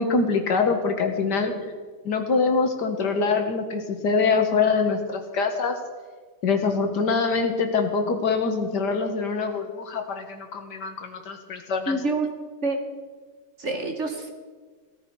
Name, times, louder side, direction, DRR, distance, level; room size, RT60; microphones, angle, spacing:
voice 1, 0.0-1.5 2.0-5.8 6.4-12.0, left 4 dB, 70° left, 5 dB, 2.0 m, -24 dB
voice 2, 11.9-12.3 12.6-12.8 13.6-14.3, right 3 dB, 45° right, 5 dB, 1.3 m, -26 dB
17.5 x 14.0 x 4.7 m, 1.5 s
omnidirectional pair, 1.9 m